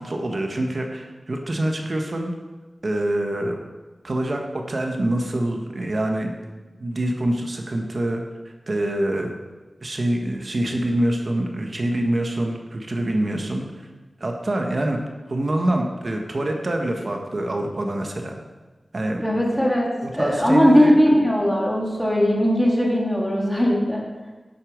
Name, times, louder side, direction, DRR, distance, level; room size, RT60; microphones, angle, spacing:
voice 1, 0.0-2.3 2.8-3.5 4.0-4.4 4.7-6.3 6.8-9.3 9.8-13.9 14.2-15.0 15.3-18.4 18.9-19.2 19.5-19.6 20.0-20.9, right 1 dB, 50° right, 2 dB, 1.5 m, -25 dB
voice 2, 19.2-19.9 20.1-24.0, equal, 5° left, -3 dB, 2.7 m, -19 dB
11.5 x 8.5 x 5.2 m, 1.2 s
wide cardioid pair, 85°, 0 cm